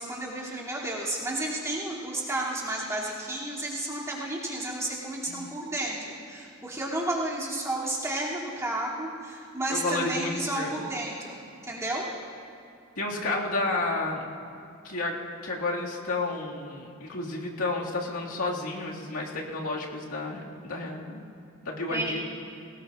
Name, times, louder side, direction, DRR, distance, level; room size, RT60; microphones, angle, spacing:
voice 1, 0.0-12.1 21.9-22.2, right 1 dB, 15° right, -6 dB, 2.8 m, -32 dB
voice 2, 9.7-10.8 13.0-14.3 14.8-15.2 15.4-21.2 21.6-22.2, left 2 dB, 90° left, -3 dB, 2.1 m, -31 dB
22.0 x 19.0 x 2.5 m, 2.5 s
head